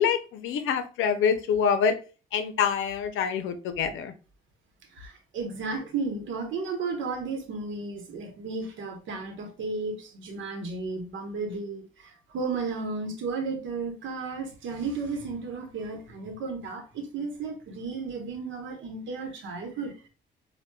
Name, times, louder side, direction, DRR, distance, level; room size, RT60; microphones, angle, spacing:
voice 1, 0.0-2.0 2.3-4.1, left 7 dB, 85° left, 0.5 m, -26 dB
voice 2, 4.9-19.9, right 4 dB, 75° right, 0.9 m, -34 dB
4.2 x 2.2 x 2.2 m
cardioid pair, 90°, 20 cm